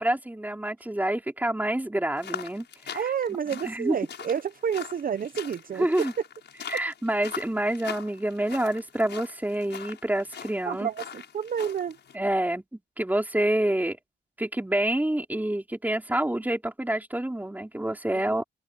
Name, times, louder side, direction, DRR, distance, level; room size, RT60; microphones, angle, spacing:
voice 1, 0.0-3.0 3.6-4.0 5.7-6.1 6.7-10.9 12.1-12.6 13.0-14.0 14.4-18.4, right 1 dB, 10° right, 4.1 m, -27 dB
sound 1, 2.2-12.2, left 8 dB, 70° left, 6.4 m, -42 dB
voice 2, 2.9-5.9 10.6-12.0 18.1-18.3, right 8 dB, 50° right, 0.7 m, -30 dB
open air
cardioid pair, 90°, 19 cm